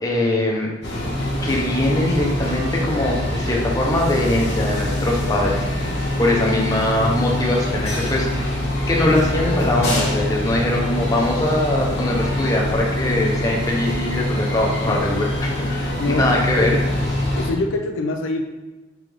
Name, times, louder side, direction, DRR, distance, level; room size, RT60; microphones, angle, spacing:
voice 1, 0.0-0.7 1.4-8.5 8.9-16.8, left 1 dB, 20° left, -2 dB, 0.6 m, -22 dB
sound 1, 0.8-17.5, left 1 dB, 55° left, 1.1 m, -24 dB
voice 2, 16.0-16.8 17.4-18.4, left 2 dB, 75° left, 5 dB, 0.4 m, -25 dB
3.7 x 3.4 x 3.4 m, 1.2 s
head